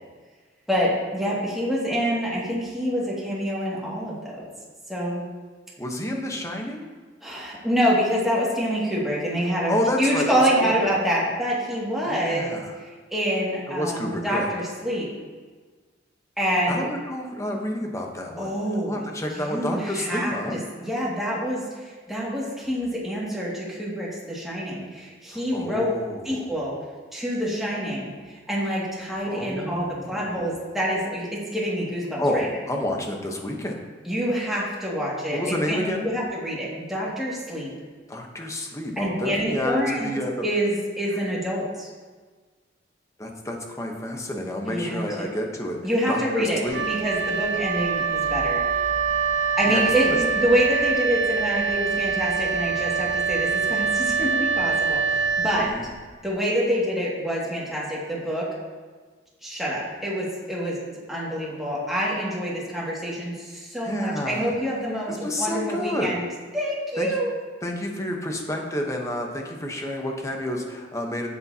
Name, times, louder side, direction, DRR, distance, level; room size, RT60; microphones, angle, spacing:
voice 1, 0.7-4.5 4.9-5.2 7.2-15.1 16.4-16.8 18.4-19.1 19.4-20.3 20.8-25.9 26.2-26.8 27.1-32.5 34.1-37.7 39.0-40.1 40.4-41.9 44.7-45.3 45.8-46.6 46.9-48.6 49.6-55.7 56.2-58.4 59.4-60.8 61.1-66.3 66.5-67.3, equal, ahead, -7 dB, 2.1 m, -26 dB
voice 2, 5.8-6.9 9.7-10.9 12.0-12.7 13.7-14.5 16.7-18.5 18.9-20.6 25.3-26.6 29.2-30.2 32.2-33.8 35.3-36.1 38.1-40.5 43.2-46.8 49.4-50.2 55.6-55.9 63.8-64.5 65.1-66.2 67.0-67.1 67.6-71.3, left 1 dB, 15° left, 1 dB, 1.0 m, -29 dB
Wind instrument woodwind instrument, 46.7-56.1, right 5 dB, 80° right, 0.7 m, -25 dB
9.6 x 8.4 x 2.8 m, 1.4 s
head